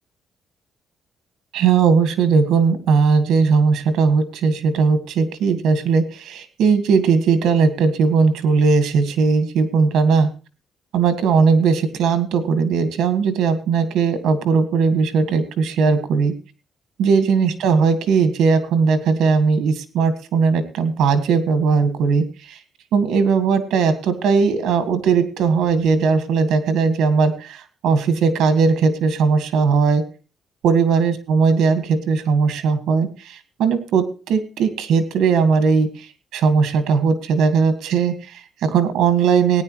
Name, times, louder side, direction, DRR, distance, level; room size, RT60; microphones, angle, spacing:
voice 1, 1.5-10.3 10.9-16.3 17.0-22.6 22.9-30.0 30.6-39.6, right 5 dB, 85° right, 10 dB, 1.7 m, -18 dB
18.0 x 10.0 x 3.1 m, 0.34 s
cardioid pair, 135°, 0 cm